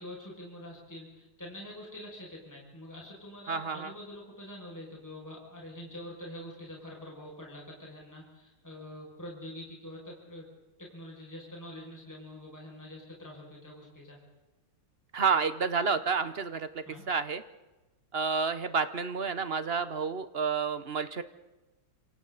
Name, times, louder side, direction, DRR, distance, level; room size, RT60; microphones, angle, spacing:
voice 1, 0.0-10.4 10.8-14.2 16.8-17.0, left 1 dB, 10° left, -3 dB, 6.2 m, -45 dB
voice 2, 3.5-3.9 15.1-16.7 17.1-17.4 18.1-21.2, right 5 dB, 50° right, 12 dB, 0.7 m, -29 dB
28.0 x 26.0 x 4.1 m, 1.1 s
omnidirectional pair, 2.2 m